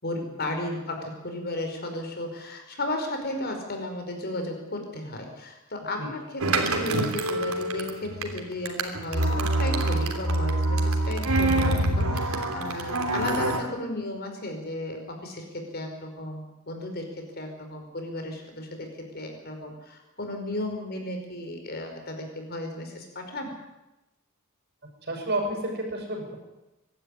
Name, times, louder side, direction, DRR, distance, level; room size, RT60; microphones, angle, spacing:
voice 1, 0.0-23.5, left 1 dB, 45° left, 4 dB, 5.0 m, -34 dB
sound 1, 6.4-13.6, right 1 dB, 75° right, 3.2 m, -25 dB
voice 2, 25.0-26.3, right 1 dB, 50° right, 2 dB, 7.1 m, -30 dB
24.0 x 12.5 x 10.0 m, 0.98 s
head